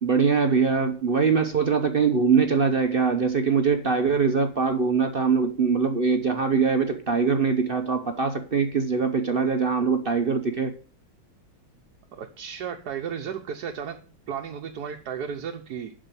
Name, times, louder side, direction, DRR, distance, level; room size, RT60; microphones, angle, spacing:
voice 1, 0.0-10.7, right 5 dB, 45° right, 0.7 m, -22 dB
voice 2, 12.1-14.0 14.3-15.9, right 7 dB, 60° right, 1.3 m, -34 dB
11.5 x 4.9 x 8.2 m
omnidirectional pair, 2.1 m